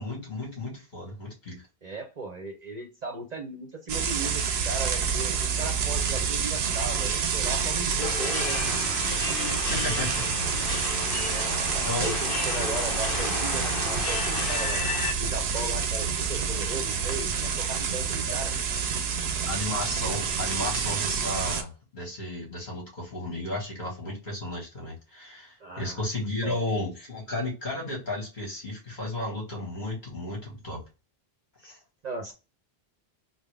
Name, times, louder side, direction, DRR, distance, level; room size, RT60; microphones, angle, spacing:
voice 1, 0.0-1.7 9.7-10.2 11.8-12.2 18.3-18.4 19.5-30.8 31.6-31.8, left 2 dB, 50° left, -2 dB, 1.7 m, -33 dB
voice 2, 1.8-8.6 11.2-14.9 15.2-18.5 25.6-26.0 26.4-26.6 32.0-32.3, right 3 dB, 45° right, 3 dB, 0.7 m, -37 dB
sound 1, 3.9-21.6, right 6 dB, 85° right, 0.9 m, -28 dB
sound 2, 8.0-15.1, left 5 dB, 65° left, 0.7 m, -33 dB
3.8 x 2.0 x 3.2 m, 0.30 s
omnidirectional pair, 1.1 m